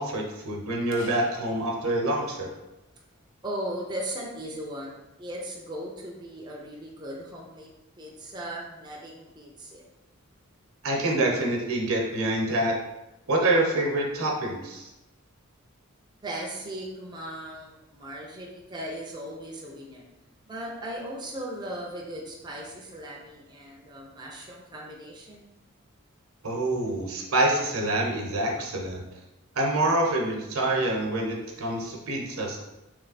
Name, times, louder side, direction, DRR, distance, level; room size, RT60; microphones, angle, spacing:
voice 1, 0.0-2.5 10.8-12.7 13.3-14.9 26.4-29.0 29.6-32.6, right 1 dB, 75° right, 0 dB, 0.9 m, -26 dB
sound 1, 0.9-2.6, right 1 dB, 55° left, 0.7 m, -44 dB
voice 2, 3.4-9.8 16.2-20.0 20.5-25.5, right 1 dB, 20° right, -2 dB, 0.5 m, -38 dB
3.3 x 3.2 x 4.0 m, 0.96 s
head